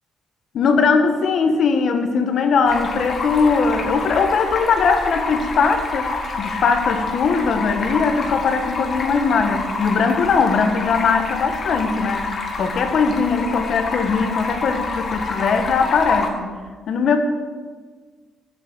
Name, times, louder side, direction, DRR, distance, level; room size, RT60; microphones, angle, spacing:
voice 1, 0.5-12.3 12.6-16.5 16.9-17.2, left 5 dB, 65° left, 7 dB, 1.1 m, -20 dB
Stream, 2.7-16.3, left 4 dB, 50° left, 1.5 m, -27 dB
7.5 x 6.9 x 7.0 m, 1.5 s
cardioid pair, 90°, 0 cm